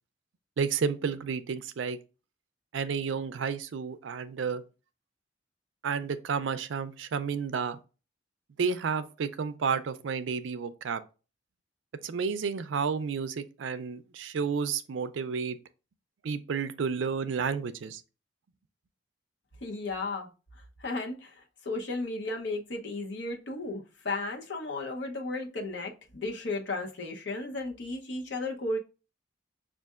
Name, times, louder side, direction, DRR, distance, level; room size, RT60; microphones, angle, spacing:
voice 1, 0.6-2.0 2.7-4.6 5.8-7.8 8.6-11.0 12.0-15.6 16.2-18.0, right 6 dB, 75° right, 0.4 m, -31 dB
voice 2, 19.6-20.3 20.8-28.8, left 2 dB, 65° left, 0.8 m, -34 dB
6.3 x 2.5 x 2.4 m
head